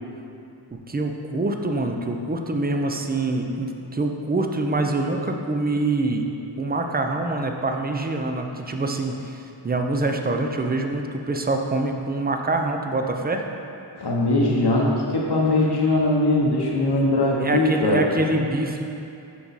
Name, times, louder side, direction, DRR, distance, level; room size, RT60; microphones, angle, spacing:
voice 1, 0.7-6.2 6.6-13.5 17.4-18.8, right 2 dB, 20° right, 3 dB, 0.5 m, -25 dB
voice 2, 14.0-18.0, left 2 dB, 55° left, -3 dB, 0.9 m, -20 dB
5.9 x 4.6 x 4.0 m, 2.7 s
wide cardioid pair, 60°, 47 cm